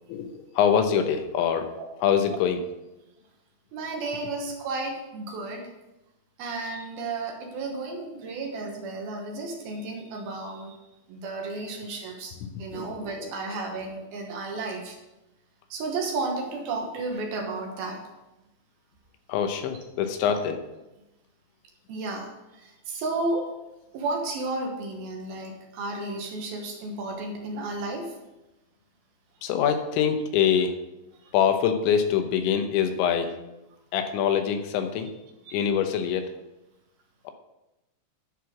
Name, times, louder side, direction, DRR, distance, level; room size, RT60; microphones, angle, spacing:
voice 1, 0.1-1.7 2.0-2.6 12.7-13.3 19.3-20.6 29.4-30.8 31.3-33.4 33.9-35.1 35.5-36.3 37.2-37.3, left 8 dB, 90° left, 7 dB, 3.3 m, -24 dB
voice 2, 3.7-5.7 6.4-10.8 11.1-15.0 15.7-18.0 20.3-20.4 21.9-23.5 23.9-28.2 31.2-31.3 35.5-35.6, right 3 dB, 70° right, 2 dB, 2.6 m, -33 dB
10.5 x 4.8 x 7.3 m, 0.96 s
omnidirectional pair, 5.1 m